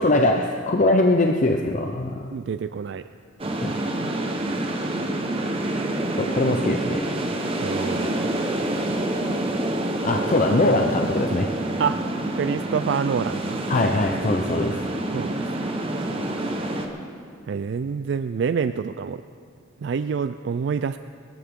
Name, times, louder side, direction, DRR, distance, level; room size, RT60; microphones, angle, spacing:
voice 1, 0.0-2.3 3.6-3.7 6.2-7.2 10.0-11.8 13.7-14.8, left 2 dB, 40° left, 3 dB, 0.6 m, -22 dB
voice 2, 2.3-3.0 7.6-8.4 11.8-12.0 12.4-14.0 15.1-15.5 15.9-16.0 17.5-19.2 19.8-21.0, right 6 dB, 65° right, 11 dB, 0.3 m, -27 dB
sound 1, 3.4-16.9, right 1 dB, 30° right, 1.1 m, -27 dB
22.5 x 13.5 x 3.7 m, 2.2 s
head